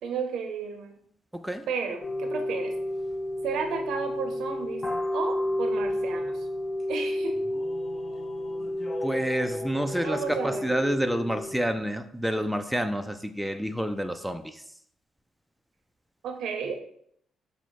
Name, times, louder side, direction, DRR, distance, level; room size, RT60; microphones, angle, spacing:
voice 1, 0.0-1.0 1.7-2.7 3.4-4.8 5.1-6.5 6.9-7.4 10.0-10.7 16.2-16.8, right 5 dB, 80° right, 5 dB, 0.7 m, -33 dB
voice 2, 1.3-1.7 9.0-14.6, equal, ahead, 7 dB, 0.3 m, -29 dB
sound 1, 2.0-11.6, left 1 dB, 35° left, 0.7 m, -31 dB
5.2 x 2.1 x 4.6 m, 0.68 s
cardioid pair, 90°, 0 cm